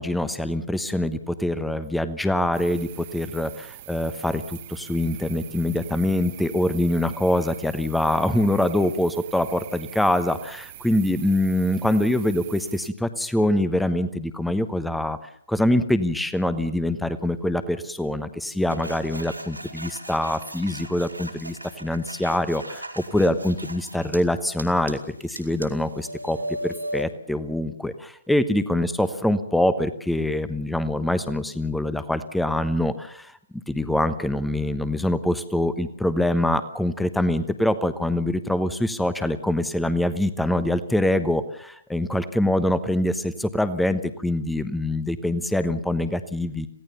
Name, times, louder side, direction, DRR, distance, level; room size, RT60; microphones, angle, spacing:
voice 1, 0.0-15.2 15.5-46.7, left 1 dB, ahead, 13 dB, 1.1 m, -24 dB
sound 1, 2.5-12.9, right 15 dB, 35° right, 1.2 m, -43 dB
sound 2, 18.7-24.2 24.6-27.0, right 1 dB, 85° right, 4.0 m, -37 dB
27.0 x 17.0 x 7.0 m, 0.68 s
figure-of-eight pair, 130°, 0 cm